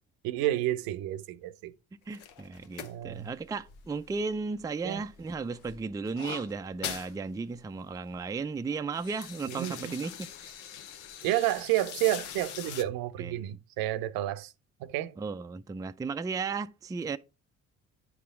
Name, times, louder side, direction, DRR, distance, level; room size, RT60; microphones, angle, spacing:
voice 1, 0.2-1.7 2.8-3.3 4.8-5.0 9.5-9.9 11.2-14.5 14.8-15.1, right 14 dB, 65° right, 0.7 m, -30 dB
sound 1, 2.1-4.6 5.0-7.1 7.5-7.6 7.9-8.3 8.7-12.8, left 9 dB, 70° left, 0.8 m, -43 dB
voice 2, 2.1-10.5 13.2-13.5 15.2-17.2, right 4 dB, 10° right, 0.4 m, -35 dB
9.3 x 5.8 x 3.7 m
hypercardioid pair, 50°, 38 cm